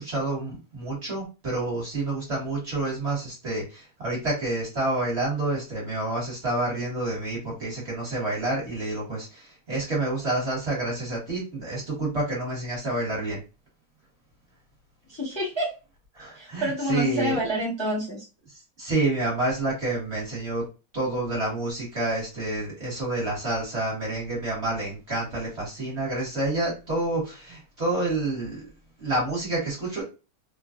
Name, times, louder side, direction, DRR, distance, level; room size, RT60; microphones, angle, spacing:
voice 1, 0.0-13.4 16.1-17.6 18.8-20.6 20.9-28.7 29.0-30.0, right 2 dB, 40° right, -5 dB, 1.6 m, -28 dB
voice 2, 15.1-15.7 16.4-18.3, equal, 20° left, -7 dB, 0.8 m, -28 dB
3.1 x 2.3 x 2.4 m, 0.30 s
omnidirectional pair, 1.9 m